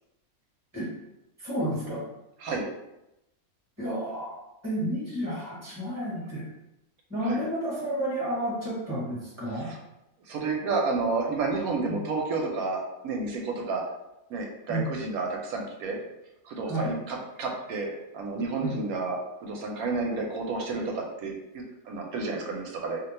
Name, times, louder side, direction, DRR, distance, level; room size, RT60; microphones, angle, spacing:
voice 1, 1.4-2.1 3.8-6.5 7.1-9.7 11.8-12.0 14.7-14.9 16.7-16.9 18.6-18.8, right 1 dB, 10° right, -6 dB, 1.0 m, -31 dB
voice 2, 10.3-13.8 14.3-16.0 16.4-23.0, right 3 dB, 85° right, 1 dB, 1.0 m, -31 dB
2.7 x 2.2 x 4.1 m, 0.91 s
omnidirectional pair, 1.5 m